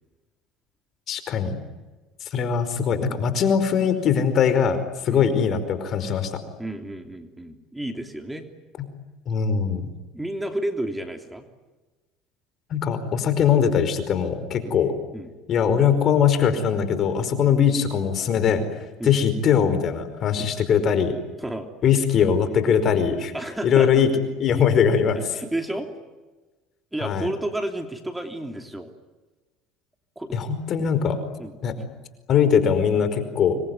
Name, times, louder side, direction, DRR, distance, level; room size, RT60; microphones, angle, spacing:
voice 1, 1.1-1.6 2.2-4.8 5.0-6.4 9.3-9.8 12.7-14.9 15.5-18.6 19.0-21.1 21.8-23.3 23.6-24.1 24.4-25.2 27.0-27.3 30.3-31.2 31.6-31.7 32.3-33.6, left 7 dB, 50° left, 11 dB, 4.9 m, -21 dB
voice 2, 6.6-8.4 10.1-11.5 14.6-14.8 15.1-15.3 19.0-19.2 20.4-20.5 21.4-21.7 23.3-24.0 25.1-25.9 26.9-28.9 30.2-30.3 31.4-31.5, right 1 dB, 10° right, 5 dB, 3.1 m, -31 dB
26.5 x 22.0 x 9.7 m, 1.2 s
supercardioid pair, 95°, 0 cm